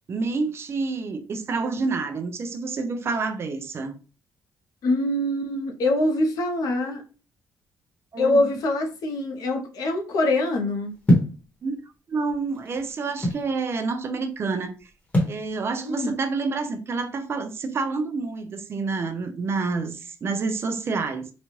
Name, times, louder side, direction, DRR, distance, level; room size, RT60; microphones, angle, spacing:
voice 1, 0.1-4.0 8.1-8.5 11.6-14.9 15.3-21.3, right 4 dB, 40° right, 0.5 m, -28 dB
voice 2, 4.8-7.0 8.2-10.9 15.8-16.1, left 2 dB, 70° left, 0.8 m, -24 dB
sound 1, 11.1-11.4 12.3-13.5 15.1-15.4, left 1 dB, 20° left, 1.1 m, -21 dB
4.0 x 2.3 x 3.1 m
cardioid pair, 145°, 7 cm